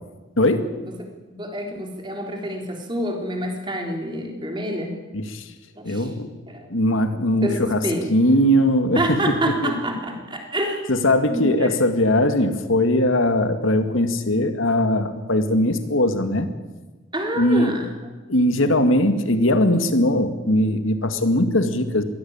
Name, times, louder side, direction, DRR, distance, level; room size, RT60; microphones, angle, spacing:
voice 1, 0.4-0.7 5.1-5.5 5.8-6.3 6.7-7.8 8.1-9.7 10.9-16.5 17.4-17.7 18.3-22.0, left 1 dB, 75° left, 8 dB, 2.1 m, -20 dB
voice 2, 1.3-5.0 5.8-6.1 6.5-6.7 7.4-8.1 9.0-10.9 11.3-11.7 17.1-17.9 21.1-21.3, equal, 20° right, 2 dB, 3.5 m, -27 dB
22.0 x 16.0 x 8.8 m, 1.2 s
head